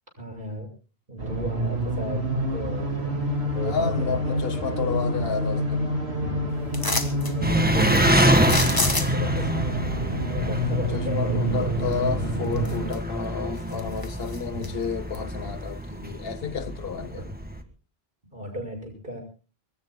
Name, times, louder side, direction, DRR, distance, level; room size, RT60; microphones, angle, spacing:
voice 1, 0.2-0.7 1.1-2.2 2.5-3.1 3.4-4.4 4.8-5.6 6.0-6.4 6.8-12.5 14.5-14.8 17.2-17.3 18.3-19.2, equal, 60° right, 6.8 m, -35 dB
sound 1, 1.2-12.9, right 1 dB, 85° right, 3.6 m, -28 dB
voice 2, 3.6-5.9 10.9-17.2, left 6 dB, 70° left, 1.2 m, -31 dB
sound 2, 6.7-7.3 8.4-9.4 11.9-12.0 12.5-13.2 13.6-14.7 15.1-15.2, left 2 dB, 20° left, 1.5 m, -28 dB
Engine, 7.4-17.6, equal, 10° right, 1.7 m, -26 dB
25.0 x 22.0 x 2.2 m
omnidirectional pair, 1.0 m